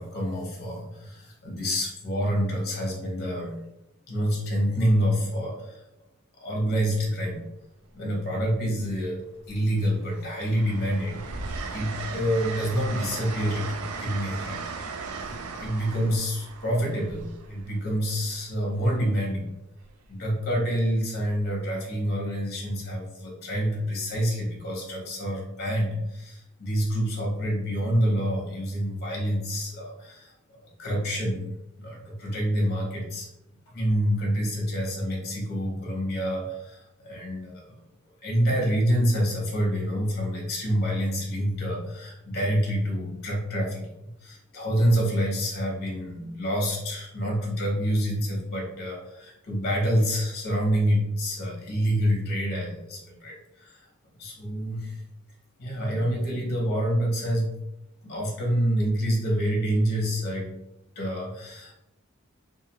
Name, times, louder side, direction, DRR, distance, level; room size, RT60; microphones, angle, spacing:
voice 1, 0.0-3.6 4.1-5.8 6.4-7.4 7.9-9.2 9.5-11.5 11.7-14.6 15.3-19.5 20.1-30.3 30.8-31.5 31.8-33.3 33.7-37.6 38.2-43.9 44.2-53.8 54.2-55.0 55.6-57.6 58.0-60.5 61.0-61.7, equal, 50° left, -1 dB, 0.8 m, -27 dB
Train, 7.0-7.1 8.3-9.1 9.5-18.2 19.8-20.1, right 4 dB, 85° right, 0.4 m, -37 dB
2.5 x 2.2 x 2.9 m, 0.86 s
head